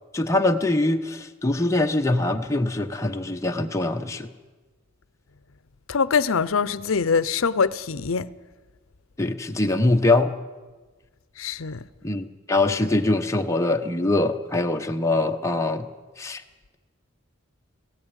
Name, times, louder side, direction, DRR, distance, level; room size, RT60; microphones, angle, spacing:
voice 1, 0.1-4.3 9.2-10.3 12.0-15.9 16.2-16.4, left 2 dB, 15° left, 1.0 m, -23 dB
voice 2, 5.9-8.3 11.4-11.8, left 5 dB, 80° left, 0.7 m, -23 dB
17.5 x 17.5 x 9.0 m
head